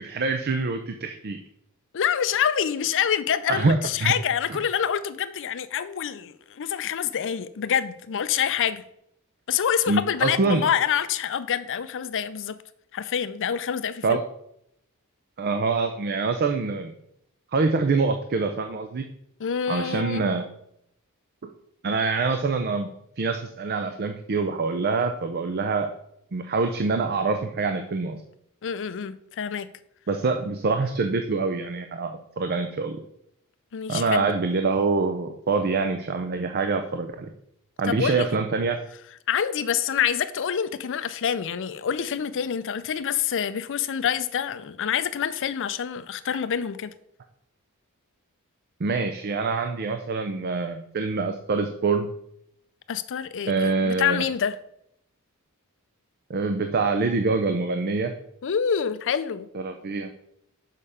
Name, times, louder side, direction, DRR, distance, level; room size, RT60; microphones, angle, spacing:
voice 1, 0.0-1.4 3.5-4.1 4.5-4.6 9.9-10.6 14.0-14.2 15.4-16.9 17.5-19.0 19.7-20.5 21.8-25.9 26.3-28.2 30.1-33.0 33.9-37.3 37.8-38.8 48.8-52.1 53.5-54.3 56.3-58.1 59.5-60.1, right 4 dB, 45° right, 7 dB, 0.5 m, -25 dB
voice 2, 1.9-8.8 9.5-12.5 12.9-14.2 19.4-20.2 28.6-29.7 33.7-34.3 37.8-38.3 39.3-46.9 52.9-54.5 58.4-59.5, left 8 dB, 60° left, 13 dB, 0.5 m, -26 dB
6.6 x 5.5 x 4.9 m, 0.76 s
head